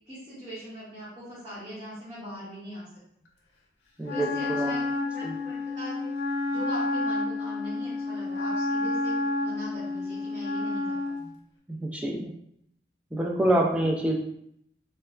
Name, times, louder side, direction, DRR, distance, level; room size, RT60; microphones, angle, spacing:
voice 1, 0.1-2.9 4.1-6.1 6.5-11.3, equal, 25° right, -12 dB, 1.0 m, -41 dB
Wind instrument woodwind instrument, 4.0-11.3, left 2 dB, 85° left, 0.5 m, -30 dB
voice 2, 4.0-4.7 5.2-5.3 11.7-12.3 13.1-14.2, right 1 dB, 5° right, 0 dB, 0.3 m, -26 dB
3.1 x 2.1 x 2.4 m, 0.72 s
head